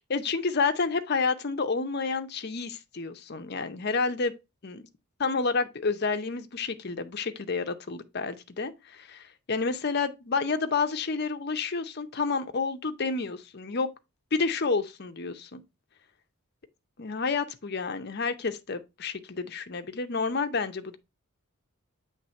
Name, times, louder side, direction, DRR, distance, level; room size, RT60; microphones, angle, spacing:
voice 1, 0.1-4.3 4.6-4.8 5.2-13.9 14.3-15.6 17.0-21.0, left 4 dB, 50° left, 0.6 m, -29 dB
7.8 x 3.3 x 4.3 m
head